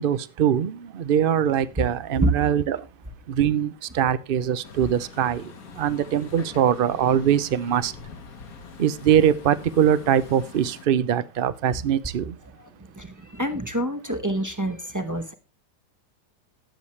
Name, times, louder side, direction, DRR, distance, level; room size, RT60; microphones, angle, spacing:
voice 1, 0.0-2.9 3.3-7.9 8.8-12.4, right 9 dB, 75° right, 0.5 m, -22 dB
Truck, 4.6-10.9, left 6 dB, 60° left, 1.6 m, -44 dB
voice 2, 13.0-15.3, right 1 dB, 15° right, 0.8 m, -26 dB
18.0 x 7.2 x 3.2 m
omnidirectional pair, 1.8 m